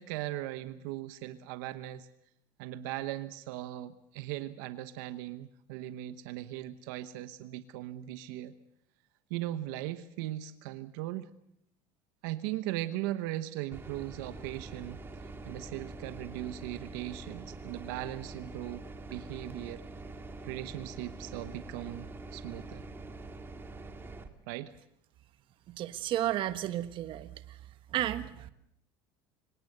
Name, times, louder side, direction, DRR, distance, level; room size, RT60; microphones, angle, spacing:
voice 1, 0.0-2.1 2.6-8.5 9.3-11.3 12.2-19.8 20.4-22.8 24.5-24.8, right 14 dB, 80° right, 12 dB, 1.1 m, -39 dB
sound 1, 13.7-24.3, right 2 dB, 20° right, 2.0 m, -45 dB
voice 2, 25.8-27.3 27.9-28.5, right 12 dB, 50° right, 12 dB, 1.3 m, -32 dB
25.0 x 18.5 x 6.8 m, 0.75 s
supercardioid pair, 115°, 11 cm